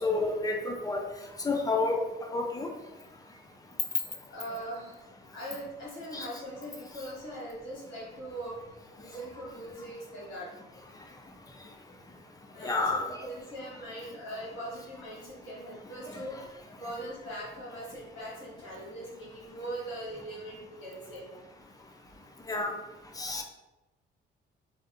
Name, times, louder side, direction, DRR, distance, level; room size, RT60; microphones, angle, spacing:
voice 1, 0.0-1.0 1.4-2.7 6.1-6.3 12.6-13.2 16.1-16.2 22.5-22.7 23.2-23.4, left 3 dB, 20° left, 3 dB, 0.4 m, -30 dB
voice 2, 4.3-5.0 5.3-10.5 12.5-21.3, right 1 dB, 90° left, -6 dB, 1.3 m, -41 dB
2.6 x 2.0 x 2.5 m, 1.1 s
cardioid pair, 90°, 20 cm